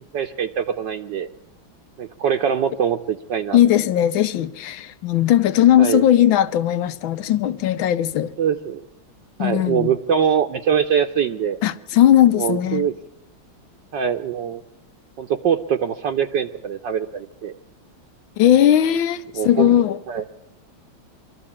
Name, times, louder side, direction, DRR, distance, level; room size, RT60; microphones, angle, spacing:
voice 1, 0.1-1.3 2.0-3.6 5.8-6.0 8.4-8.8 9.4-11.6 12.4-12.9 13.9-14.6 15.2-17.6 19.3-19.7 20.1-20.2, right 8 dB, 65° right, 1.5 m, -23 dB
voice 2, 3.5-8.3 9.4-9.9 11.6-12.9 18.4-20.0, left 11 dB, 75° left, 1.6 m, -18 dB
24.0 x 14.0 x 8.6 m
omnidirectional pair, 2.2 m